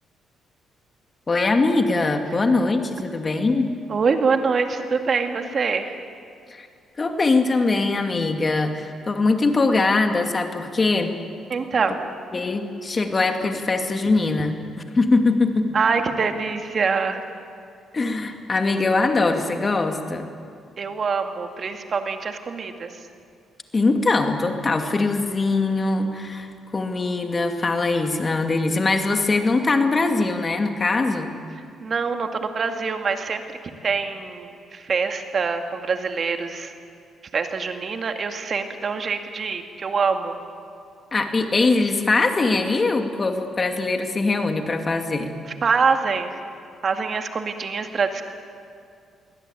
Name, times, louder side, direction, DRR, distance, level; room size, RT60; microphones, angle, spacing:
voice 1, 1.3-3.7 6.5-6.7 7.0-11.1 12.3-14.6 14.9-15.7 17.9-20.3 23.7-31.3 41.1-45.3, left 3 dB, 30° left, 5 dB, 2.5 m, -22 dB
voice 2, 3.9-6.0 11.5-12.0 15.7-17.2 20.8-22.9 31.8-33.4 33.8-36.7 37.3-40.4 45.6-46.3 46.8-48.2, right 5 dB, 45° right, 5 dB, 2.2 m, -24 dB
23.5 x 17.0 x 9.2 m, 2.4 s
cardioid pair, 90°, 0 cm